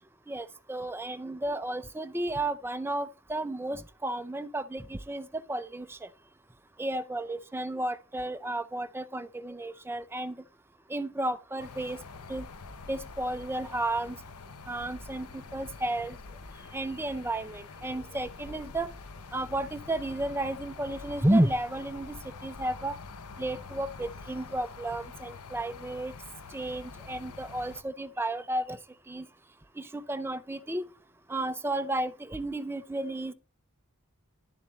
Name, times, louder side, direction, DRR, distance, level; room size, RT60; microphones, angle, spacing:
voice 1, 0.3-6.1 6.8-10.3 10.9-12.0 12.3-12.5 12.9-14.2 14.7-16.2 16.7-18.9 19.3-22.1 22.4-22.9 23.4-26.1 26.5-28.8 29.1-29.3 29.8-30.8 31.3-33.3, right 1 dB, 10° right, 0.5 m, -32 dB
sound 1, 11.6-27.8, left 4 dB, 90° left, 0.7 m, -46 dB
11.0 x 7.1 x 3.2 m
head